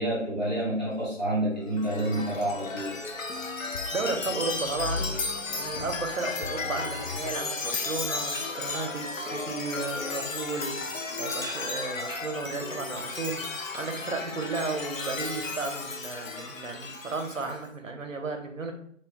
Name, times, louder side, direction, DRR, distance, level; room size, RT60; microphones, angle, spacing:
voice 1, 0.0-3.7, right 1 dB, 35° left, -9 dB, 1.2 m, -29 dB
Chime, 1.7-17.6, left 3 dB, 90° left, 0.6 m, -34 dB
voice 2, 3.9-18.7, right 3 dB, 75° right, 4 dB, 0.6 m, -34 dB
3.1 x 2.2 x 2.7 m, 0.64 s
figure-of-eight pair, 175°, 38 cm